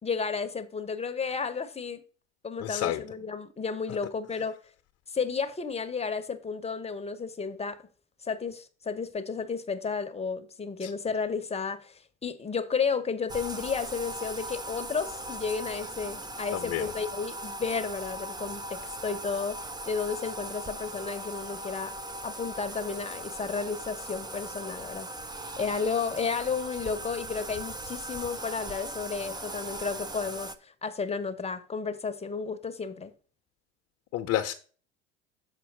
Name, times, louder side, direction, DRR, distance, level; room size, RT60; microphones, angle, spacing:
voice 1, 0.0-2.0 2.4-4.6 5.1-7.8 8.2-21.9 22.2-25.1 25.6-33.1, left 5 dB, 20° left, 1.0 m, -32 dB
voice 2, 2.6-3.0 10.8-10.9 16.5-16.8 34.1-34.5, left 12 dB, 50° left, 0.9 m, -29 dB
Bathtub (filling or washing), 13.3-30.6, right 1 dB, 10° right, 0.7 m, -39 dB
7.1 x 4.5 x 5.2 m
hypercardioid pair, 70°, 34 cm